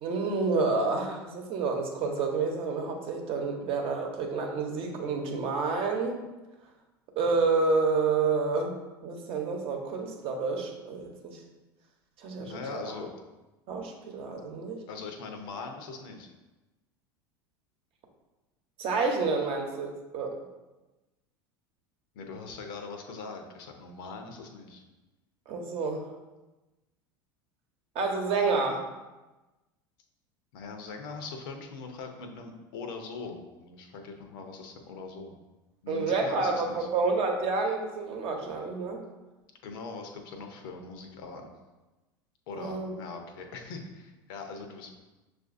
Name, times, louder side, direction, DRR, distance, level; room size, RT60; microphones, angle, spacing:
voice 1, 0.0-6.2 7.2-11.4 12.2-12.8 13.7-14.8 18.8-20.3 25.5-26.1 27.9-28.8 35.9-39.0 42.5-43.0, right 4 dB, 50° right, 2 dB, 0.9 m, -29 dB
voice 2, 12.4-13.1 14.9-16.3 22.1-24.8 30.5-35.3 35.8-36.9 39.6-41.5 42.5-44.9, left 4 dB, 65° left, 4 dB, 0.7 m, -41 dB
6.1 x 2.5 x 2.5 m, 1.1 s
hypercardioid pair, 85°, 12 cm